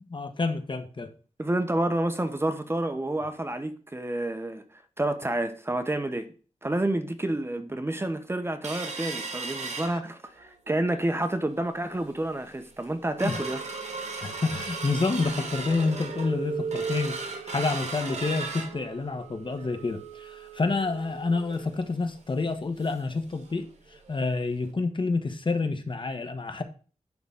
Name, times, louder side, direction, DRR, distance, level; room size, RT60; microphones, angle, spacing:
voice 1, 0.1-1.1 9.8-10.0 13.2-13.4 14.2-23.7 24.1-26.6, left 3 dB, 40° left, 1.3 m, -28 dB
voice 2, 1.4-6.3 6.6-13.6, right 1 dB, 20° right, 1.1 m, -29 dB
sound 1, 8.6-10.5 10.9-11.0 11.3-11.7 12.2-12.3 12.6-23.1 23.5-23.6 23.9-24.1 24.6-24.7, right 4 dB, 70° right, 2.6 m, -36 dB
11.0 x 4.0 x 5.6 m
wide cardioid pair, 105°, 12 cm